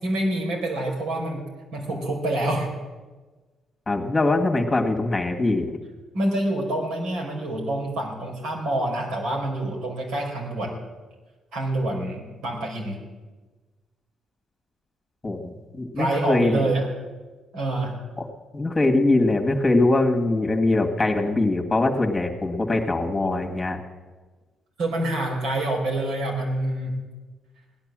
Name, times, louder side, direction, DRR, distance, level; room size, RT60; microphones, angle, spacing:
voice 1, 0.0-2.7 6.1-10.8 11.5-13.0 16.0-16.9 17.5-17.9 24.8-27.0, right 1 dB, 80° right, 0 dB, 4.5 m, -27 dB
voice 2, 3.9-5.7 15.2-16.6 18.2-18.3 18.5-23.8, left 2 dB, 20° left, 2 dB, 2.0 m, -22 dB
17.0 x 10.5 x 7.6 m, 1.3 s
cardioid pair, 90°, 0 cm